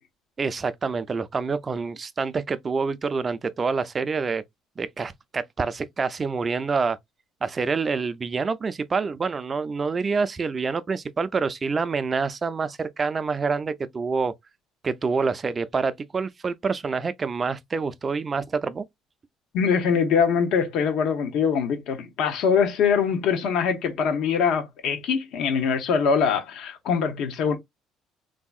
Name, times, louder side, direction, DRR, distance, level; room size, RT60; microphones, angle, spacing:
voice 1, 0.4-4.4 4.8-7.0 7.4-14.3 14.8-18.8, right 4 dB, 25° right, 0.4 m, -27 dB
voice 2, 19.5-27.6, left 6 dB, 70° left, 0.8 m, -23 dB
3.4 x 2.7 x 2.3 m
cardioid pair, 120°, 0 cm